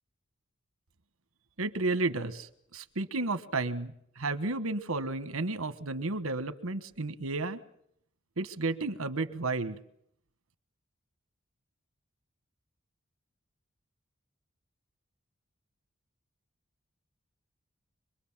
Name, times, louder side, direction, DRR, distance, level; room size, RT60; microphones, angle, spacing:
voice 1, 1.6-7.6 8.4-9.8, right 3 dB, 85° right, 12 dB, 1.3 m, -32 dB
25.5 x 21.5 x 7.4 m, 0.71 s
head